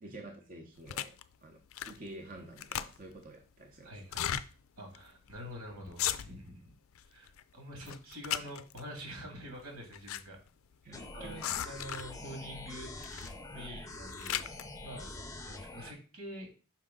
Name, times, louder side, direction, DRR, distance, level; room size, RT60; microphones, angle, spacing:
voice 1, 0.0-3.9 10.8-11.4, right 2 dB, 40° right, 2 dB, 0.8 m, -49 dB
sound 1, 0.9-1.2 1.7-2.1 2.4-3.2 4.0-4.5 4.9-5.0 5.3-5.5 5.9-6.5 7.0-7.4 7.8-8.8 9.6-10.2 10.5-10.6 11.4-12.2 13.0-13.4 13.8-14.6, left 11 dB, 65° left, 0.4 m, -36 dB
voice 2, 3.8-4.3 4.8-6.7 7.1-10.4 10.9-14.5 14.8-15.1 15.4-16.5, equal, 80° right, 2 dB, 2.3 m, -46 dB
sound 2, 10.9-15.9, left 2 dB, 15° left, 0.6 m, -45 dB
5.7 x 5.0 x 3.7 m, 0.36 s
head